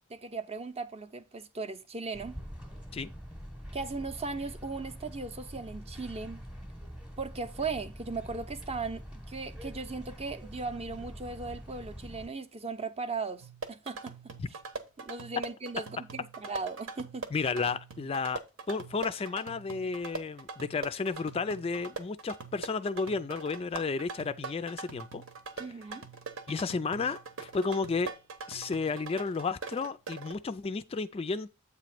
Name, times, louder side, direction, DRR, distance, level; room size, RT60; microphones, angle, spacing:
voice 1, 0.1-2.4 3.7-6.4 7.2-14.1 15.0-17.3 25.6-26.0, right 4 dB, 30° right, 0.6 m, -37 dB
sound 1, 2.1-12.3, equal, 5° right, 0.9 m, -45 dB
sound 2, 13.4-30.3, right 4 dB, 80° right, 1.1 m, -43 dB
voice 2, 17.3-18.4 18.7-25.2 26.5-28.1 28.5-31.5, left 4 dB, 30° left, 0.3 m, -32 dB
8.3 x 3.0 x 5.8 m
head